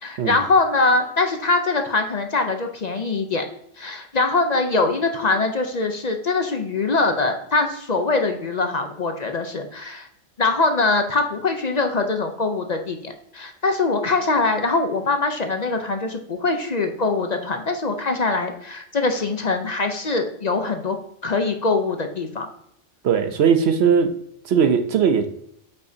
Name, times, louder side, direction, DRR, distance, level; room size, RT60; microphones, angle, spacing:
voice 1, 0.0-3.4 3.8-10.1 10.4-21.0 21.2-22.5, left 3 dB, 45° left, 5 dB, 0.6 m, -23 dB
voice 2, 23.0-24.1 24.4-25.3, right 7 dB, 65° right, 7 dB, 0.8 m, -18 dB
8.2 x 5.4 x 2.7 m, 0.72 s
omnidirectional pair, 1.3 m